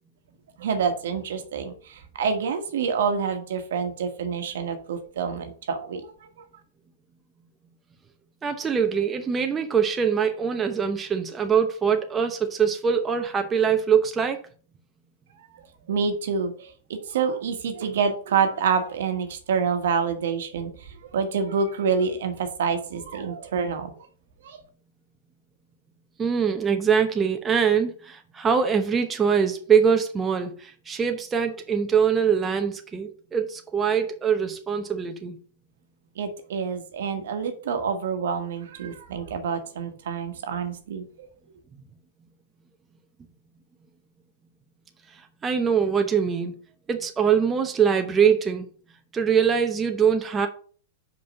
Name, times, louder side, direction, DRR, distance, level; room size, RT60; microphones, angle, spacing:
voice 1, 0.6-6.0 15.9-20.7 21.1-23.9 24.4-24.6 36.2-41.0, right 6 dB, 70° right, 1.3 m, -27 dB
voice 2, 8.4-14.4 26.2-35.4 45.4-46.6 46.9-48.7 49.1-50.5, right 7 dB, 20° right, 0.8 m, -23 dB
5.4 x 5.2 x 5.3 m
hypercardioid pair, 110°, 0 cm